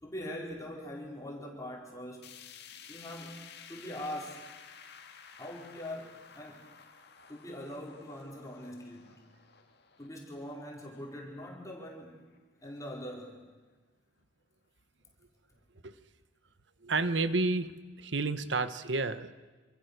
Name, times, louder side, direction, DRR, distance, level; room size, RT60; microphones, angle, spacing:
voice 1, 0.0-2.4 2.9-3.4 3.7-4.5 5.4-6.7 7.3-9.2 10.0-12.2 12.6-13.4, left 1 dB, 15° left, -1 dB, 4.4 m, -42 dB
sound 1, 2.2-12.4 12.8-12.9 13.3-13.4 14.2-14.3, left 7 dB, 60° left, 2.5 m, -54 dB
voice 2, 16.8-17.7 18.0-19.3, right 3 dB, 70° right, 12 dB, 1.2 m, -30 dB
27.5 x 26.5 x 6.7 m, 1.3 s
head